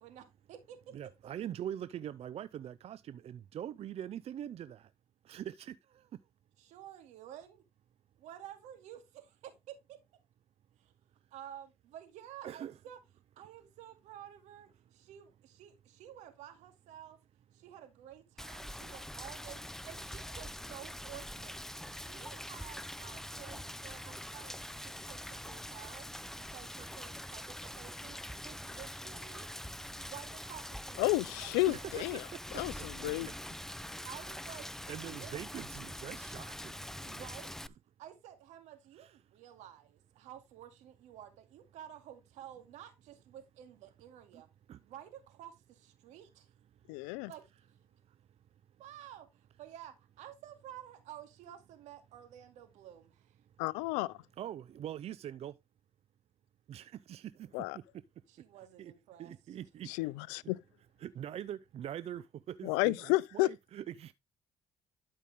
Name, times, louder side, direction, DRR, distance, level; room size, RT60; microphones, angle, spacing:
voice 1, 0.0-1.0 6.6-7.6 8.2-10.0 10.8-10.9 11.3-13.0 13.4-17.2 17.5-21.6 21.9-26.1 26.4-29.5 29.9-31.5 31.8-31.9 34.0-35.4 37.0-37.5 38.0-44.5 44.8-46.5 47.3-47.4 48.8-53.4 58.3-59.6, right 11 dB, 80° right, 2.4 m, -52 dB
voice 2, 0.9-4.9 5.2-6.1 12.4-12.7 31.7-32.2 32.5-33.3 34.9-36.9 39.0-39.2 44.3-44.4 44.7-44.8 54.4-55.5 56.7-56.8 57.1-57.2 58.8-58.9 59.2-59.9 61.0-64.1, right 10 dB, 60° right, 0.5 m, -43 dB
Rain, 18.4-37.7, left 1 dB, 5° left, 0.5 m, -44 dB
voice 3, 31.0-32.2 32.5-33.3 46.9-47.3 53.6-54.2 57.5-57.8 59.9-60.6 62.6-63.5, left 21 dB, 90° left, 0.5 m, -31 dB
12.0 x 5.5 x 3.5 m
supercardioid pair, 60°, 12 cm